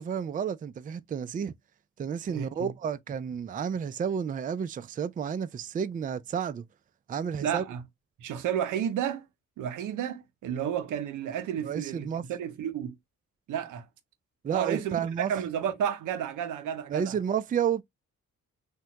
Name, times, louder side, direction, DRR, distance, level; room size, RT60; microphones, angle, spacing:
voice 1, 0.0-1.5 2.0-6.6 7.1-7.6 11.6-12.2 14.4-15.3 16.9-17.8, right 7 dB, 30° right, 0.4 m, -31 dB
voice 2, 2.3-2.7 7.4-7.8 8.2-9.2 9.6-13.0 13.5-13.9 14.5-17.2, right 9 dB, 85° right, 0.7 m, -32 dB
3.5 x 2.2 x 2.8 m
cardioid pair, 65°, 30 cm